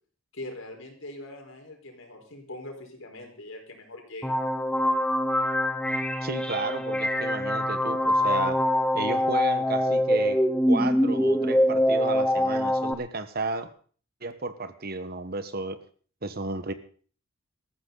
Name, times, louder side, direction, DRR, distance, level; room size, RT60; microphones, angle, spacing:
voice 1, 0.3-4.3, left 1 dB, 80° left, 3 dB, 4.6 m, -42 dB
sound 1, 4.2-12.9, left 1 dB, 5° left, 0.9 m, -24 dB
voice 2, 6.2-8.6 8.9-10.4 10.7-13.7 14.2-15.8 16.2-16.7, right 3 dB, 50° right, 11 dB, 1.3 m, -33 dB
19.0 x 14.0 x 4.0 m, 0.43 s
head